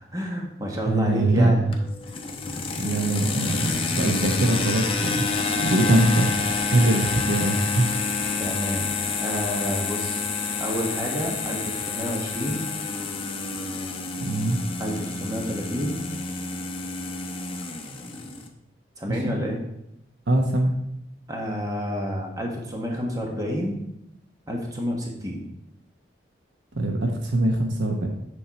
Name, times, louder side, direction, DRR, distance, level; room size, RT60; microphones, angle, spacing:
voice 1, 0.0-1.6 2.5-2.7 8.4-8.9 9.2-10.2 10.6-12.7 14.8-16.0 19.0-19.6 21.3-23.8 24.5-25.4, equal, 20° right, 0 dB, 1.4 m, -29 dB
voice 2, 0.9-1.7 2.8-5.2 5.6-6.4 6.7-7.9 14.2-14.6 19.1-19.3 20.3-20.7 26.7-28.1, right 1 dB, 90° right, 3 dB, 1.0 m, -22 dB
sound 1, 1.7-18.5, left 4 dB, 30° left, 0.8 m, -28 dB
8.7 x 6.4 x 4.3 m, 0.82 s
head